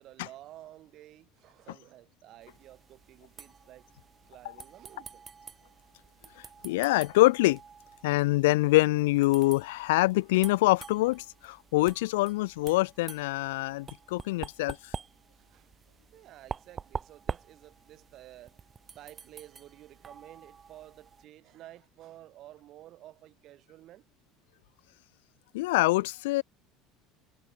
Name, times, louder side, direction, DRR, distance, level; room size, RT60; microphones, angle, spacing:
voice 1, 0.0-3.9 4.2-5.3 15.3-15.7 16.1-18.6 19.0-24.1, right 14 dB, 55° right, 7.2 m, -52 dB
sound 1, 2.4-21.3, right 6 dB, 30° right, 6.2 m, -46 dB
voice 2, 6.6-7.6 8.0-14.8 25.5-26.4, left 20 dB, 75° left, 0.4 m, -25 dB
hypercardioid pair, 70°, 0 cm